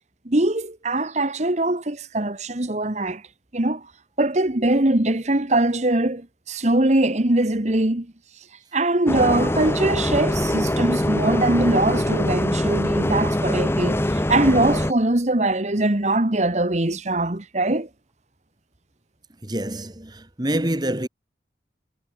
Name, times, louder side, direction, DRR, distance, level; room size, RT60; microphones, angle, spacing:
voice 1, 0.2-3.2 3.5-3.8 4.2-8.1 8.7-17.9, right 2 dB, 40° right, 1.5 m, -22 dB
Bus, 9.1-14.9, left 1 dB, 15° left, 1.0 m, -23 dB
voice 2, 19.4-21.1, right 1 dB, 25° right, 2.0 m, -26 dB
head